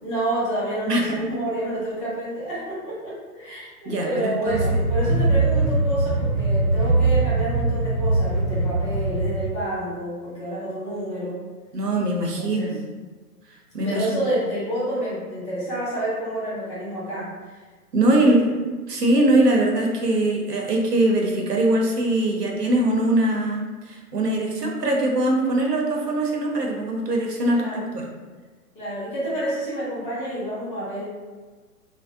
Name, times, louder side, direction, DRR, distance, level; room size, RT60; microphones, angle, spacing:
voice 1, 0.0-11.4 12.1-12.7 13.8-17.6 27.5-27.8 28.7-31.0, right 1 dB, 15° left, -10 dB, 0.8 m, -29 dB
voice 2, 3.5-4.8 11.7-12.8 13.7-14.1 17.9-18.5 18.9-28.0, right 1 dB, 85° right, 0 dB, 0.7 m, -22 dB
sound 1, 4.5-9.5, right 2 dB, 15° right, 0.5 m, -22 dB
2.6 x 2.0 x 2.5 m, 1.4 s
figure-of-eight pair, 125°, 46 cm